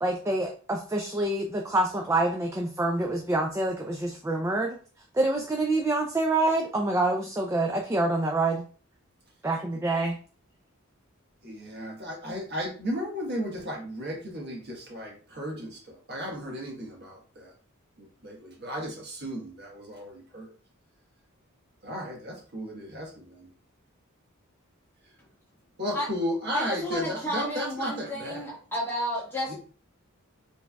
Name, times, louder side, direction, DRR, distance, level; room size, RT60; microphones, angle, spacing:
voice 1, 0.0-4.8 5.1-8.6 9.4-10.2, right 2 dB, 15° right, 1 dB, 0.4 m, -26 dB
voice 2, 11.4-17.5 18.0-20.5 21.8-23.5 25.8-28.5 29.5-29.6, equal, 50° right, -1 dB, 1.3 m, -34 dB
voice 3, 26.5-29.5, equal, 10° left, -5 dB, 1.5 m, -31 dB
4.7 x 3.4 x 2.3 m, 0.40 s
head